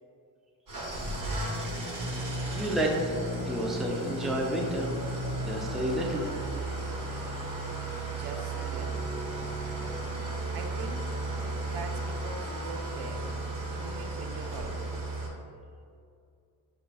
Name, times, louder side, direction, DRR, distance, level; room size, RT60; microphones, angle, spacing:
Engine starting / Idling, 0.7-15.3, right 2 dB, 50° right, 1.1 m, -34 dB
Bowed string instrument, 2.1-5.9, left 4 dB, 90° left, 0.6 m, -46 dB
voice 1, 2.5-3.1 3.4-4.9 5.4-6.2, right 1 dB, ahead, -1 dB, 0.3 m, -30 dB
voice 2, 8.1-9.2 10.5-11.1 11.6-13.3 13.8-15.1, right 5 dB, 75° right, 5 dB, 0.5 m, -43 dB
5.2 x 2.5 x 3.2 m, 2.4 s
cardioid pair, 130°, 40 cm